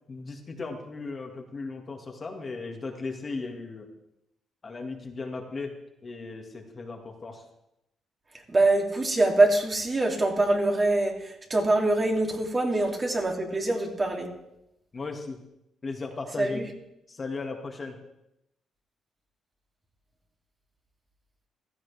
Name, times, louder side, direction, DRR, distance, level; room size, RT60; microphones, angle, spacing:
voice 1, 0.1-3.9 4.6-5.8 6.0-7.4 12.7-12.8 14.9-15.4 15.8-16.6 17.1-18.0, left 3 dB, 35° left, 2 dB, 2.1 m, -36 dB
voice 2, 8.5-14.3 16.4-16.7, right 2 dB, 30° right, 1 dB, 2.9 m, -24 dB
15.5 x 13.5 x 3.5 m, 0.84 s
cardioid pair, 90°, 0 cm